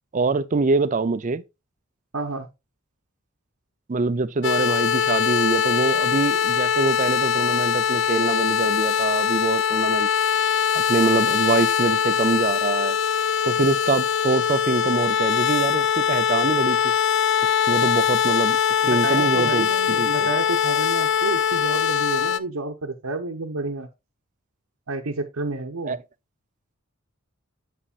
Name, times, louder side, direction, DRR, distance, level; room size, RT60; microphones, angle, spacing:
voice 1, 0.1-1.4 3.9-10.1 10.7-13.0 13.5-16.9 17.7-18.6 18.9-20.3 25.9-26.0, right 3 dB, 35° right, 0.5 m, -24 dB
voice 2, 2.1-2.5 18.8-23.9 24.9-26.0, right 3 dB, 85° right, 0.9 m, -30 dB
sound 1, 4.4-22.4, left 8 dB, 55° left, 0.4 m, -22 dB
7.8 x 7.2 x 2.4 m
head